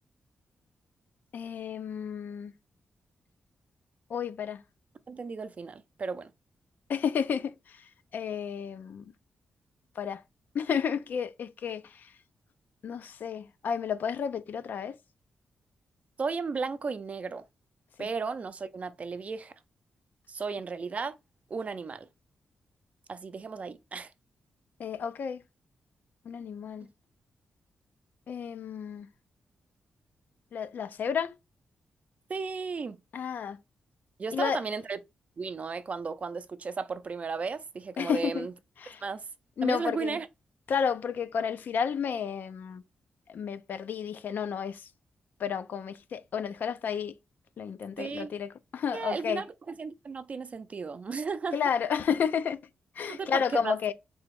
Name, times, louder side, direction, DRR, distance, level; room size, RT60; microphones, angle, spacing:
voice 1, 1.3-2.5 4.1-4.6 6.9-7.8 8.1-9.1 10.0-10.2 10.5-12.1 12.8-15.0 18.0-18.1 24.8-25.4 26.3-26.9 28.3-29.1 30.5-31.4 33.1-33.6 34.3-34.6 38.0-38.5 38.8-39.0 39.6-40.2 40.7-42.8 43.3-44.9 45.4-47.2 47.6-49.4 51.5-52.6 53.0-53.9, left 7 dB, 70° left, 0.5 m, -31 dB
voice 2, 5.1-6.3 16.2-17.4 18.0-19.5 20.3-21.2 21.5-22.1 23.1-24.1 32.3-33.0 34.2-35.0 35.4-38.5 39.0-39.2 39.6-40.3 48.0-48.3 48.9-49.5 49.8-51.6 53.1-53.7, right 4 dB, 45° right, 0.5 m, -34 dB
3.9 x 3.4 x 3.4 m
cardioid pair, 85°, 3 cm